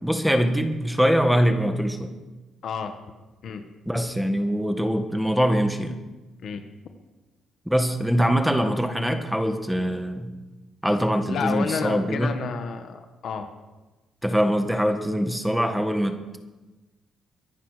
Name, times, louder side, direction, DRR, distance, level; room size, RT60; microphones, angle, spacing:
voice 1, 0.0-2.1 3.9-6.0 7.6-10.3 10.8-12.3 14.2-16.4, equal, ahead, 6 dB, 1.7 m, -23 dB
voice 2, 2.6-2.9 3.4-3.6 6.4-6.6 11.3-13.5, left 6 dB, 65° left, 7 dB, 1.5 m, -30 dB
23.5 x 10.0 x 5.1 m, 1.2 s
cardioid pair, 90°, 0 cm